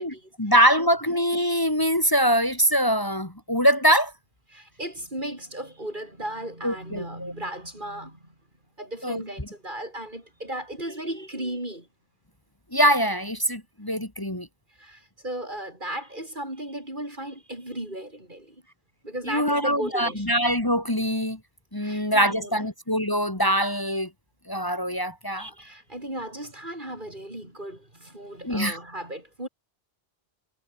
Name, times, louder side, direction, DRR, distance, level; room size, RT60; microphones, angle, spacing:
voice 1, 0.0-4.1 6.6-7.3 9.0-9.2 12.7-14.5 19.3-21.4 21.7-24.1 24.5-25.5 28.4-28.8, equal, 20° left, 2.8 m, -23 dB
voice 2, 4.5-8.2 8.8-11.9 14.8-18.6 19.0-20.3 21.8-22.7 25.4-29.5, right 1 dB, 50° right, 7.8 m, -36 dB
omnidirectional pair, 1.0 m